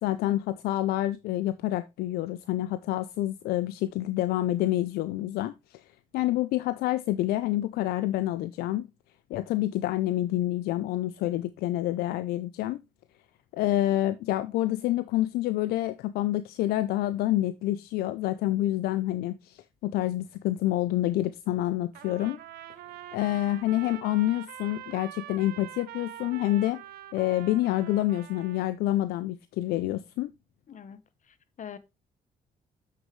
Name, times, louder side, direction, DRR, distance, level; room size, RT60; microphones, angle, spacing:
voice 1, 0.0-5.8 6.1-8.9 9.3-12.8 13.5-22.4 23.1-26.8 27.1-30.3, left 15 dB, 90° left, 0.4 m, -28 dB
Trumpet, 21.9-28.7, right 13 dB, 85° right, 0.7 m, -44 dB
voice 2, 30.7-31.8, left 8 dB, 55° left, 1.0 m, -45 dB
7.2 x 6.6 x 3.1 m
cardioid pair, 75°, 16 cm